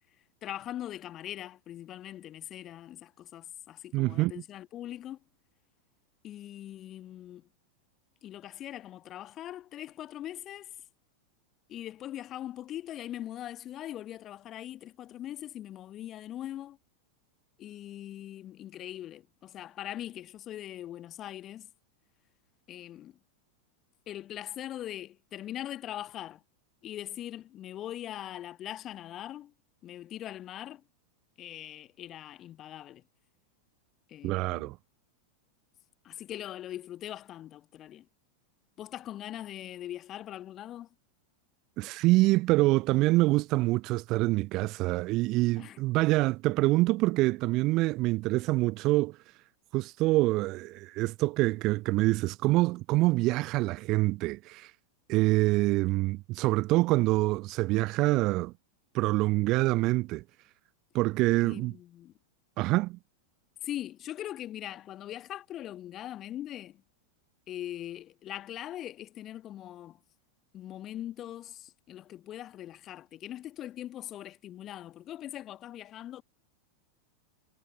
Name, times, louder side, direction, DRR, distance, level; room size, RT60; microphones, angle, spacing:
voice 1, 0.4-5.2 6.2-7.5 8.2-10.7 11.7-16.8 17.6-21.7 22.7-23.1 24.1-26.4 26.8-29.5 29.8-30.8 31.4-33.0 34.1-34.7 36.0-38.0 38.8-40.9 45.6-45.8 61.4-62.1 63.6-66.8 67.5-70.0 70.5-76.2, left 12 dB, 30° left, 1.6 m, -41 dB
voice 2, 3.9-4.3 34.2-34.8 41.8-49.2 49.7-54.7 55.1-58.5 58.9-60.2 60.9-61.8 62.6-63.0, right 20 dB, 40° right, 0.4 m, -26 dB
figure-of-eight pair, 90°, 0 cm